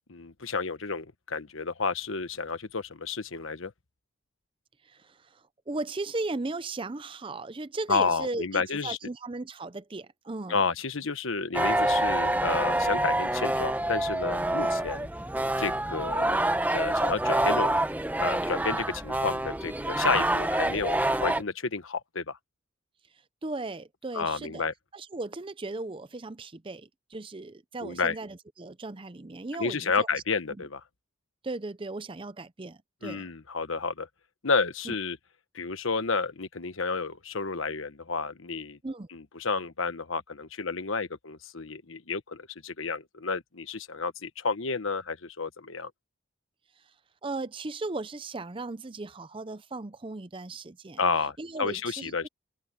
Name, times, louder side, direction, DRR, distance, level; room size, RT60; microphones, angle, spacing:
voice 1, 0.0-3.7 7.9-9.0 10.5-15.1 15.6-17.8 18.2-22.4 24.1-24.7 27.8-28.2 29.6-30.8 33.0-34.1 34.4-35.2 35.5-38.8 39.1-45.9 51.0-52.3, left 4 dB, 70° left, 1.2 m, -31 dB
voice 2, 4.8-10.6 23.4-24.6 24.9-30.1 31.4-33.3 34.8-34.9 38.8-39.1 47.2-51.0 51.4-52.3, right 2 dB, 25° right, 0.5 m, -37 dB
sound 1, 11.5-21.4, right 1 dB, 10° right, 0.9 m, -27 dB
open air
head